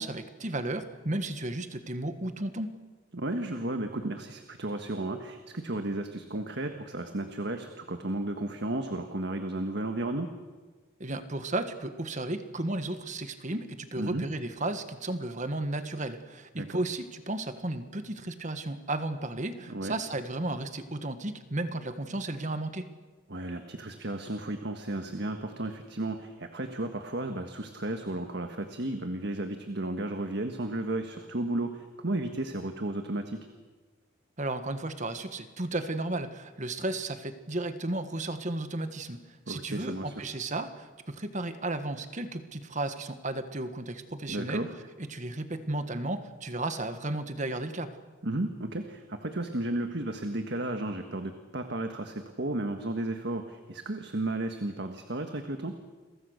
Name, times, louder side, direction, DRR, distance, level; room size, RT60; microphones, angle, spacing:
voice 1, 0.0-2.7 11.0-22.9 34.4-39.2 39.5-44.7 45.0-47.9, right 2 dB, 40° right, 9 dB, 1.6 m, -34 dB
voice 2, 3.1-10.3 14.0-14.2 16.5-16.8 19.7-19.9 23.3-33.5 39.5-40.1 44.3-44.7 48.2-55.7, right 1 dB, 55° right, 6 dB, 1.6 m, -33 dB
30.0 x 23.0 x 6.6 m, 1.3 s
head